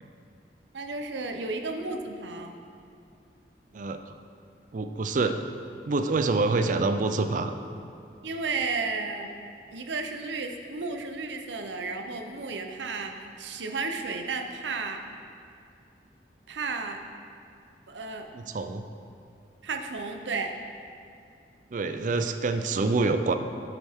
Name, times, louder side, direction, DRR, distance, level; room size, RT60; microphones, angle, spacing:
voice 1, 0.7-2.5 8.2-9.3 9.7-15.0 16.5-17.0 17.9-18.3 19.6-20.5, right 4 dB, 90° right, 4 dB, 0.7 m, -33 dB
voice 2, 4.7-5.4 5.9-7.5 18.3-18.9 21.7-23.3, right 3 dB, 45° right, 9 dB, 0.4 m, -26 dB
8.6 x 8.0 x 3.6 m, 2.5 s
head